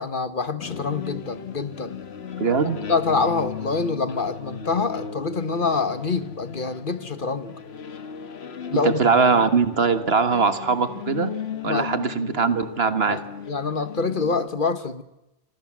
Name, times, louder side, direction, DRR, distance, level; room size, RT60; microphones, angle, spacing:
voice 1, 0.0-2.0 2.5-7.6 8.7-9.0 11.7-11.9 13.1-13.2 13.5-15.0, left 4 dB, 55° left, 12 dB, 1.6 m, -26 dB
sound 1, 0.6-14.5, left 7 dB, 90° left, 1.4 m, -36 dB
voice 2, 2.4-2.8 8.8-11.3 11.6-13.2, right 5 dB, 75° right, 11 dB, 1.8 m, -21 dB
27.0 x 26.0 x 7.5 m, 0.93 s
omnidirectional pair, 1.0 m